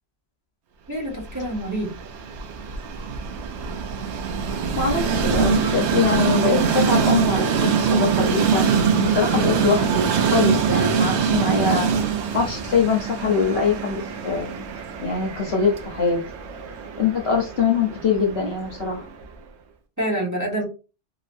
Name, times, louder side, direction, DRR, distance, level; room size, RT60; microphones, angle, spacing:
voice 1, 0.9-1.9 20.0-20.6, right 1 dB, 15° right, -2 dB, 1.0 m, -26 dB
Train, 1.2-19.2, right 6 dB, 75° right, 0.9 m, -24 dB
voice 2, 4.8-11.9 12.3-14.7 15.0-16.2 17.0-19.1, left 5 dB, 65° left, 1 dB, 1.1 m, -23 dB
2.9 x 2.8 x 2.5 m, 0.32 s
omnidirectional pair, 1.2 m